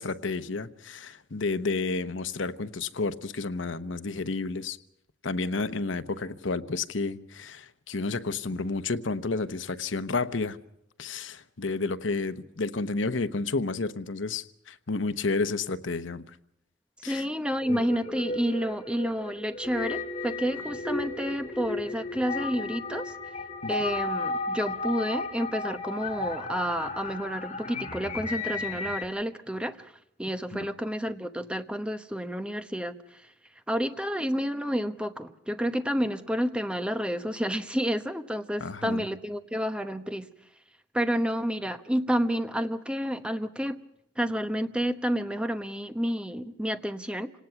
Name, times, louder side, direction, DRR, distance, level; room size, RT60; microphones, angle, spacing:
voice 1, 0.0-4.8 5.2-10.6 11.0-16.3 17.0-17.2 17.7-17.8 23.6-23.7 30.5-30.7 38.6-39.0, left 3 dB, 80° left, 1.0 m, -31 dB
voice 2, 17.1-23.1 23.7-29.9 30.2-33.2 33.7-40.3 40.9-43.8 44.2-47.3, equal, 5° right, 1.0 m, -30 dB
sound 1, 17.6-29.1, left 3 dB, 35° left, 2.2 m, -34 dB
27.5 x 18.5 x 5.8 m
head